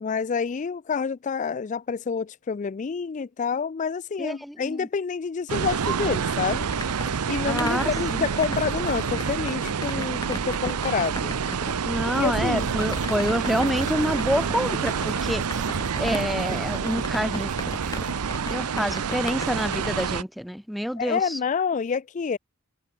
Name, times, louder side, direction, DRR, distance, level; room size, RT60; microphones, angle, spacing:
voice 1, 0.0-6.7 7.3-11.3 12.1-12.7 21.0-22.4, left 5 dB, 35° left, 0.3 m, -28 dB
voice 2, 4.2-4.9 7.4-8.3 11.8-15.4 16.0-17.5 18.5-21.4, equal, ahead, 0.7 m, -27 dB
sound 1, 5.5-20.2, right 6 dB, 90° right, 0.6 m, -28 dB
sound 2, 6.2-20.2, left 2 dB, 20° left, 3.2 m, -38 dB
sound 3, 12.1-18.1, right 3 dB, 35° right, 0.8 m, -40 dB
open air
head